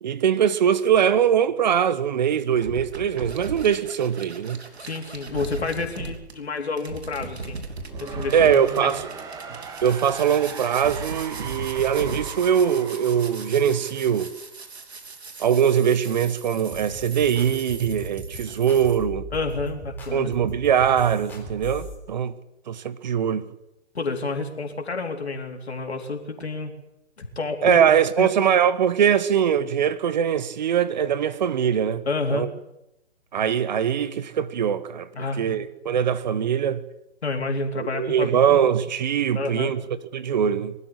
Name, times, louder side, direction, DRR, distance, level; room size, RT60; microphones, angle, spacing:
voice 1, 0.0-4.6 8.3-9.1 9.8-14.3 15.4-19.2 20.1-22.3 22.7-23.5 27.6-32.0 32.3-32.5 33.3-35.1 35.4-36.8 37.8-39.8 40.1-40.7, right 8 dB, 40° right, 1.3 m, -22 dB
sound 1, 2.5-19.0, right 3 dB, 70° right, 3.3 m, -38 dB
voice 2, 4.8-7.6 8.0-8.9 18.5-18.6 19.3-20.3 23.9-26.7 27.2-28.3 32.1-32.5 35.1-35.6 37.2-38.6 39.3-39.7, left 3 dB, 70° left, 3.9 m, -29 dB
sound 2, 7.7-14.6, right 5 dB, 10° right, 1.5 m, -39 dB
sound 3, 16.7-21.9, right 1 dB, 5° left, 3.5 m, -38 dB
22.5 x 13.0 x 10.0 m
figure-of-eight pair, 140°, 34 cm